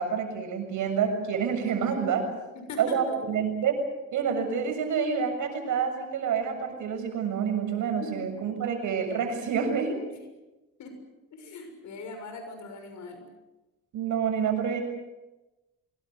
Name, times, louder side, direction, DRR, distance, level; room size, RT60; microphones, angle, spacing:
voice 1, 0.0-2.2 2.8-3.8 4.1-10.0 13.9-14.8, right 7 dB, 80° right, 6 dB, 7.0 m, -28 dB
voice 2, 2.5-3.0 8.0-8.3 10.1-10.2 10.8-11.0 11.3-13.3, left 3 dB, 70° left, 6 dB, 6.9 m, -40 dB
25.0 x 21.5 x 8.0 m, 1.1 s
cardioid pair, 90°, 30 cm